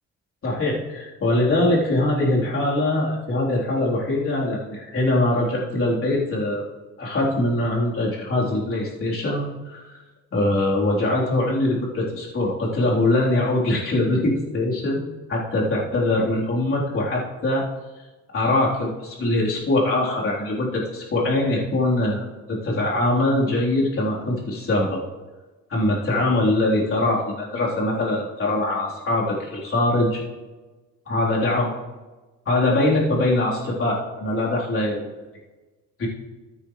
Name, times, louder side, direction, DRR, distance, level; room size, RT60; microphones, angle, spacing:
voice 1, 0.4-6.6 7.0-10.0 10.3-15.0 15.3-17.7 18.3-25.0 25.7-30.2 31.1-31.7 32.5-35.1 36.0-36.1, left 1 dB, 45° left, -5 dB, 3.7 m, -22 dB
14.0 x 9.0 x 3.2 m, 1.2 s
cardioid pair, 90°, 30 cm